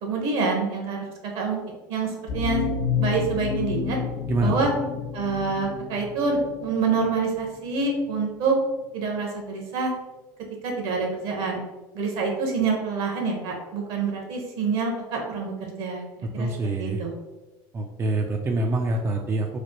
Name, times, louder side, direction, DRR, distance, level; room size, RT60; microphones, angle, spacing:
voice 1, 0.0-1.0 1.3-1.6 1.9-2.6 3.0-4.0 4.4-4.7 5.1-8.6 8.9-9.9 10.6-11.6 11.9-16.0 16.3-16.5 16.8-17.1, right 4 dB, 60° right, 1 dB, 1.1 m, -26 dB
sound 1, 2.3-7.1, left 5 dB, 80° left, 0.5 m, -29 dB
voice 2, 16.4-17.0 17.7-19.6, right 2 dB, 25° right, 2 dB, 0.4 m, -25 dB
3.2 x 2.1 x 4.2 m, 1.1 s
hypercardioid pair, 90°, 10 cm